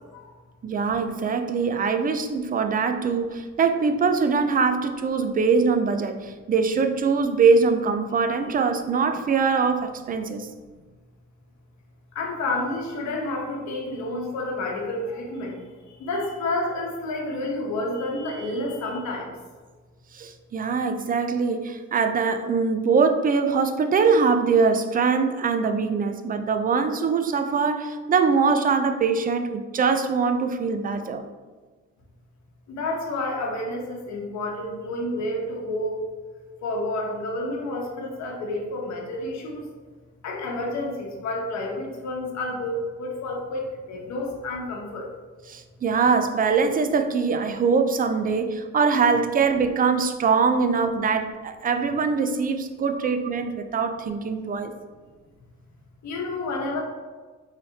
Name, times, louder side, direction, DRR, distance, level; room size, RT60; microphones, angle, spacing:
voice 1, 0.6-10.5 20.1-31.2 45.5-54.7, right 5 dB, 30° right, 7 dB, 0.4 m, -22 dB
voice 2, 12.1-15.6 15.9-19.3 32.7-36.1 36.6-39.6 40.2-45.1 53.0-53.1 56.0-56.8, left 2 dB, 65° left, 0 dB, 0.9 m, -30 dB
4.1 x 3.3 x 2.7 m, 1.4 s
cardioid pair, 90°, 30 cm